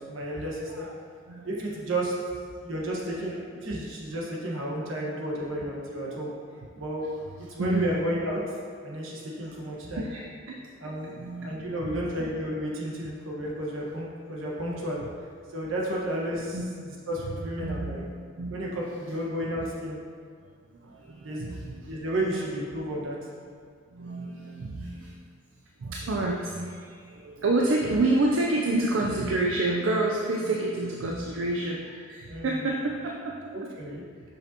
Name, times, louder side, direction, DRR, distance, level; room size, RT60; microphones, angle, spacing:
voice 1, 0.1-0.9 1.4-2.1 2.6-6.3 6.8-7.1 7.5-8.4 8.8-10.1 10.8-11.1 11.4-15.0 15.5-16.6 17.1-18.0 18.5-20.0 21.1-21.6 21.9-23.2 32.3-32.6 33.5-34.0, right 1 dB, 85° right, -4 dB, 1.3 m, -32 dB
voice 2, 7.6-7.9 9.2-12.1 16.5-16.6 17.3-18.9 19.6-19.7 20.7-21.9 23.9-25.3 25.8-33.5, right 2 dB, 70° right, -1 dB, 0.5 m, -29 dB
6.4 x 5.4 x 2.8 m, 2.1 s
head